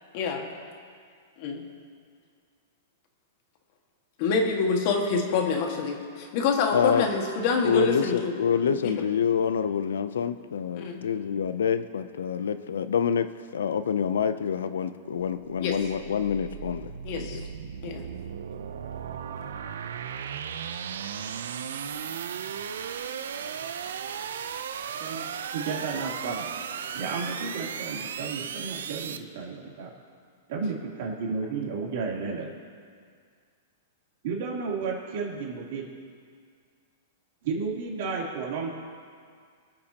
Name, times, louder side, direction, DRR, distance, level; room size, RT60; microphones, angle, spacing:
voice 1, 0.1-0.5 1.4-1.6 4.2-8.3 8.8-8.9 10.7-11.1 15.6-15.7 17.0-17.4 17.8-18.0, left 4 dB, 50° left, 2 dB, 1.8 m, -26 dB
voice 2, 6.7-7.1 7.6-17.4, left 7 dB, 90° left, 12 dB, 0.6 m, -27 dB
sound 1, 15.2-29.2, right 8 dB, 85° right, 0.6 m, -36 dB
voice 3, 25.5-26.5 26.9-29.9 30.5-32.5 34.2-35.9 37.4-38.7, right 4 dB, 60° right, -3 dB, 3.2 m, -32 dB
25.0 x 8.7 x 2.9 m, 2.1 s
hypercardioid pair, 140°, 0 cm